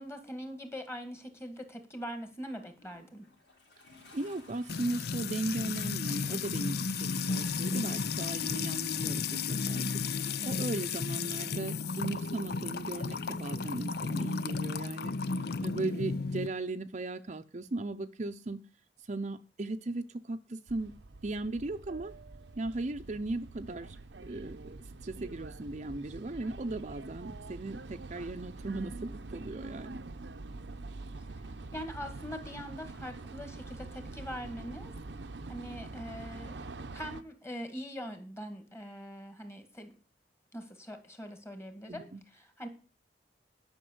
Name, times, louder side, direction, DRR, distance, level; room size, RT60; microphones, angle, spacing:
voice 1, 0.0-3.3 31.2-34.9 35.5-39.9 40.5-42.7, equal, 15° left, 7 dB, 2.0 m, -43 dB
Toilet flush, 2.6-11.0 12.0-12.1, left 3 dB, 85° left, 4.4 m, -59 dB
voice 2, 4.1-10.0 10.4-15.1 15.4-18.6 19.1-20.9 21.2-22.1 22.6-24.0 24.3-24.7 25.0-30.0 41.9-42.2, right 2 dB, 40° right, 7 dB, 0.6 m, -37 dB
Music / Water tap faucet / Trickle dribble, 4.7-16.5, left 5 dB, 65° left, 0.6 m, -33 dB
sound 1, 20.7-37.2, right 3 dB, 90° right, 0.8 m, -45 dB
11.0 x 6.1 x 7.9 m, 0.36 s
head